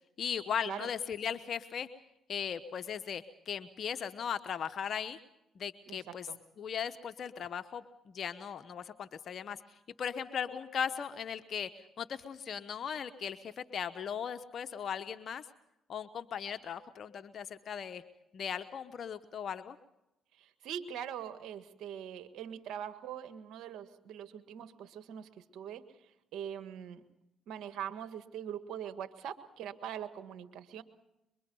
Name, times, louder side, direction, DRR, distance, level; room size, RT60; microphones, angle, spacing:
voice 1, 0.2-1.9 2.3-5.2 5.6-6.3 6.6-9.6 10.0-11.7 12.0-15.4 15.9-18.0 18.3-19.8, left 7 dB, 60° left, 9 dB, 0.9 m, -38 dB
voice 2, 5.9-6.4 20.4-25.8 26.3-27.0 27.5-30.8, right 9 dB, 75° right, 10 dB, 1.5 m, -42 dB
24.0 x 23.0 x 5.4 m, 0.88 s
supercardioid pair, 65°, 0 cm